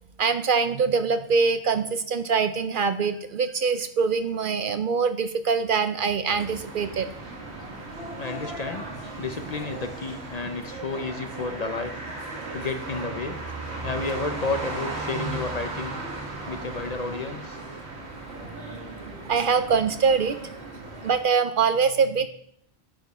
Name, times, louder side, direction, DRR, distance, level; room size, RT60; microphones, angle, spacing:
voice 1, 0.2-7.1 8.0-8.1 19.3-20.4 21.0-22.3, right 5 dB, 60° right, 10 dB, 0.7 m, -23 dB
sound 1, 6.3-21.2, right 2 dB, 90° right, 2.0 m, -36 dB
voice 2, 8.2-8.9 9.2-11.9 12.5-13.4 13.8-16.0 16.5-17.6, left 3 dB, 40° left, 7 dB, 0.8 m, -31 dB
10.5 x 7.5 x 4.2 m, 0.68 s
omnidirectional pair, 1.1 m